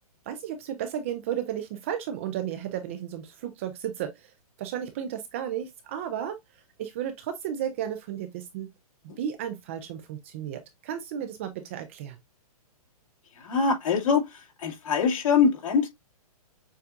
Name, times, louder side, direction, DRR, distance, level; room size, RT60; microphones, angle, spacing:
voice 1, 0.3-4.3 4.6-6.4 6.8-8.7 9.2-12.2, right 10 dB, 20° right, 0.3 m, -33 dB
voice 2, 13.3-15.9, left 5 dB, 55° left, 2.2 m, -24 dB
6.9 x 2.4 x 2.5 m
hypercardioid pair, 155°, 20 cm